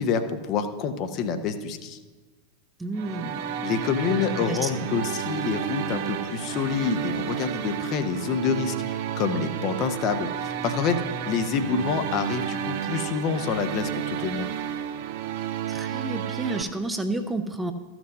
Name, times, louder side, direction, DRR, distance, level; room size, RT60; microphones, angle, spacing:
voice 1, 0.0-2.0 3.6-14.5, left 6 dB, 40° left, 8 dB, 0.9 m, -27 dB
voice 2, 2.8-3.7 4.5-4.7 15.7-17.7, right 2 dB, 10° right, 7 dB, 0.7 m, -30 dB
sound 1, 2.9-16.6, right 9 dB, 50° right, 0.7 m, -31 dB
13.5 x 6.1 x 5.4 m, 1.3 s
figure-of-eight pair, 90°, 0 cm